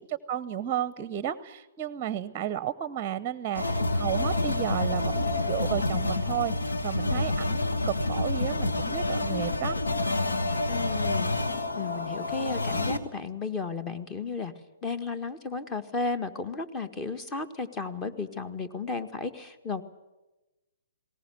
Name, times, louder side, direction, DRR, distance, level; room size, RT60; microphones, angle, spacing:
voice 1, 0.0-9.8, right 10 dB, 25° right, 16 dB, 0.8 m, -33 dB
sound 1, 3.5-13.0, left 2 dB, 80° left, 1.7 m, -28 dB
voice 2, 10.7-11.3 11.7-14.5 14.8-19.8, left 4 dB, 20° left, 11 dB, 1.6 m, -33 dB
20.5 x 18.5 x 9.4 m, 1.1 s
figure-of-eight pair, 125°, 0 cm